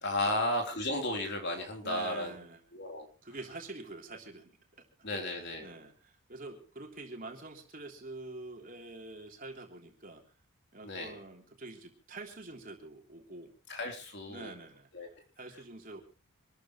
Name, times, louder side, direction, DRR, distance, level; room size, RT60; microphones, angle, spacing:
voice 1, 0.0-2.4 2.7-3.1 5.0-5.7 10.8-11.2 13.7-14.5 14.9-15.1, left 1 dB, 50° left, 3 dB, 3.7 m, -34 dB
voice 2, 1.8-2.6 3.2-4.5 5.2-10.2 10.7-13.5 14.3-14.9 15.4-16.0, right 2 dB, 40° right, 2 dB, 3.4 m, -46 dB
26.5 x 13.5 x 3.2 m, 0.33 s
head